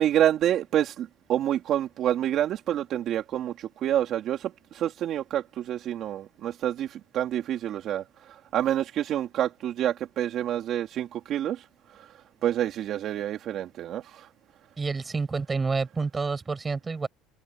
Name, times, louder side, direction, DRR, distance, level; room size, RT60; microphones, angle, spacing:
voice 1, 0.0-12.1 12.4-14.3, right 11 dB, 55° right, 3.0 m, -28 dB
voice 2, 14.8-17.1, right 4 dB, 20° right, 7.2 m, -28 dB
cardioid pair, 110°, 0 cm